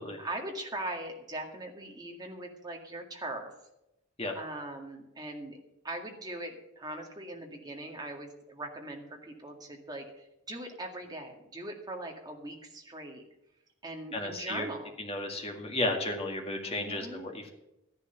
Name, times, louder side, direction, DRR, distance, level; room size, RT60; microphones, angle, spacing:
voice 1, 0.2-3.5 4.3-5.6 5.8-13.2 13.8-14.9 16.7-17.3, right 1 dB, 20° right, 1 dB, 2.0 m, -40 dB
voice 2, 14.1-14.7 15.0-17.5, left 2 dB, 30° left, 2 dB, 2.0 m, -33 dB
13.0 x 10.5 x 5.8 m, 0.89 s
head